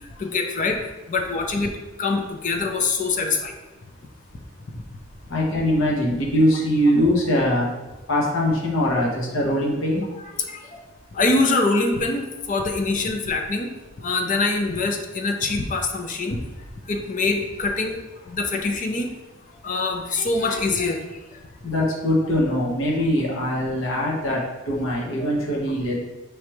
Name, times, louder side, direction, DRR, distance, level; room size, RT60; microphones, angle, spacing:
voice 1, 0.2-0.8 1.1-1.7 2.0-3.6 4.7-4.8 10.4-10.8 11.1-13.7 14.0-16.4 16.9-18.0 18.3-19.1 19.6-21.2, left 3 dB, 40° left, 4 dB, 0.5 m, -24 dB
voice 2, 5.3-7.7 8.1-10.0 21.6-25.9, equal, 70° left, -4 dB, 1.2 m, -22 dB
5.0 x 3.3 x 3.1 m, 1.1 s
head